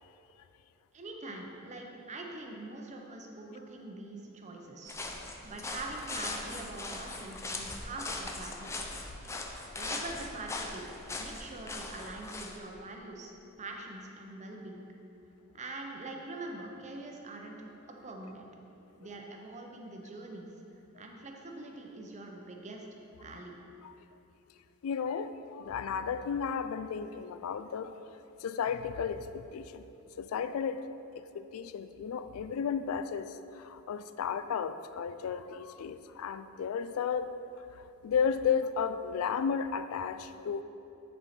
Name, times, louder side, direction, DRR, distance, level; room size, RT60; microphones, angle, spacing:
voice 1, 0.9-5.0 5.4-8.8 9.7-10.9 11.2-13.3 13.6-14.9 15.5-17.7 18.0-18.5 19.0-20.5 21.0-22.9 23.2-23.6, right 2 dB, 35° right, 1 dB, 0.7 m, -43 dB
sound 1, 4.9-12.6, left 2 dB, 15° left, 0.5 m, -40 dB
voice 2, 24.8-28.0 28.4-29.9 30.2-30.8 31.2-37.3 37.7-40.6, left 6 dB, 70° left, 12 dB, 0.3 m, -33 dB
9.4 x 4.5 x 4.2 m, 2.9 s
head